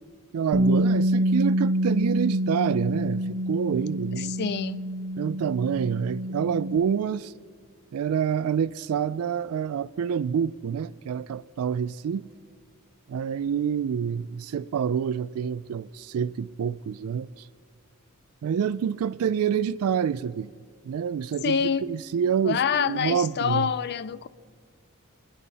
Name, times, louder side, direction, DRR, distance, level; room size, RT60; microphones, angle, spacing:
voice 1, 0.3-4.3 5.2-7.3 7.9-12.3 13.1-17.5 18.4-20.5 20.8-23.7, right 7 dB, 70° right, 0.3 m, -27 dB
Bass guitar, 0.5-6.8, right 1 dB, 90° right, 1.0 m, -26 dB
voice 2, 4.1-4.8 21.4-21.9 22.4-24.3, left 7 dB, 50° left, 0.4 m, -26 dB
29.0 x 10.0 x 4.1 m
head